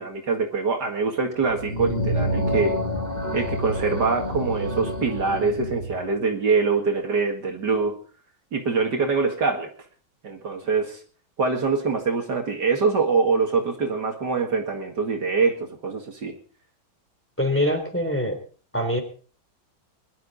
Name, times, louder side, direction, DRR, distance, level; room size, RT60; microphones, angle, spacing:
voice 1, 0.0-2.8 3.3-8.0 8.5-9.7 10.2-11.0 11.4-16.4, right 4 dB, 55° right, 3 dB, 2.5 m, -24 dB
sound 1, 1.4-6.0, equal, 20° left, 2.7 m, -28 dB
voice 2, 17.4-18.4 18.7-19.0, left 1 dB, 5° left, 4 dB, 3.3 m, -23 dB
22.5 x 12.0 x 4.0 m, 0.42 s
omnidirectional pair, 2.2 m